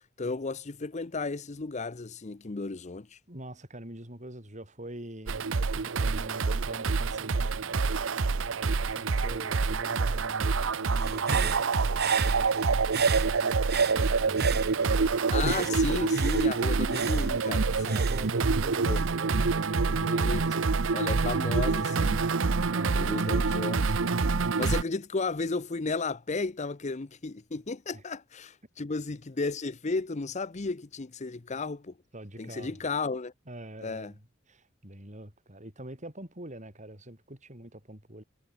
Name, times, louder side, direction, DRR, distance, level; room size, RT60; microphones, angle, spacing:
voice 1, 0.2-3.2 15.3-18.0 18.8-19.0 20.0-20.6 20.9-22.2 22.9-24.1 24.6-32.0 32.4-33.3 33.8-34.1, left 3 dB, 35° left, 0.7 m, -34 dB
voice 2, 3.3-7.9 8.8-14.9 17.9-20.2 22.4-23.3 27.9-28.0 32.1-32.8 33.5-38.2, right 1 dB, 35° right, 7.2 m, -44 dB
sound 1, 5.3-24.8, right 4 dB, 75° right, 0.8 m, -26 dB
Human voice / Breathing, 10.9-15.1 15.4-19.0, right 7 dB, 55° right, 3.8 m, -36 dB
head